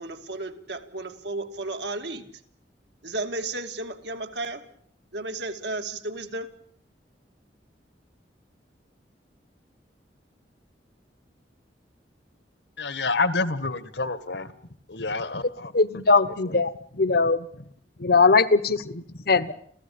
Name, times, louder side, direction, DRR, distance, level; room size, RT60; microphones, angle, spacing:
voice 1, 0.0-2.3 3.0-4.6 5.1-6.5, right 2 dB, 70° right, 2.5 m, -33 dB
voice 2, 12.8-14.5 14.9-16.0 16.9-17.0 18.1-18.2, left 3 dB, 75° left, 1.8 m, -28 dB
voice 3, 15.7-16.7 17.0-17.5 18.0-19.5, left 4 dB, 60° left, 1.2 m, -20 dB
28.5 x 16.0 x 8.7 m
head